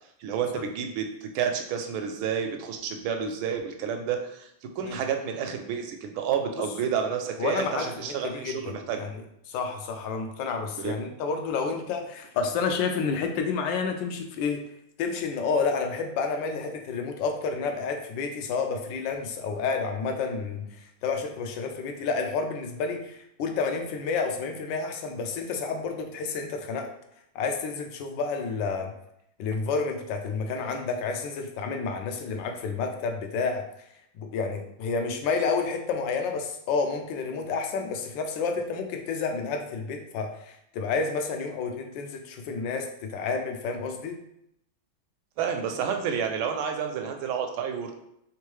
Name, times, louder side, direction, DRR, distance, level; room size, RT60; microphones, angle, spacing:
voice 1, 0.2-4.5 4.8-9.1 10.8-11.0 45.4-47.9, right 7 dB, 80° right, 5 dB, 1.4 m, -30 dB
voice 2, 7.4-14.6 15.0-26.9 27.3-28.9 29.4-33.7 34.2-44.2, left 4 dB, 75° left, 5 dB, 1.2 m, -30 dB
3.7 x 3.5 x 3.2 m, 0.77 s
omnidirectional pair, 2.2 m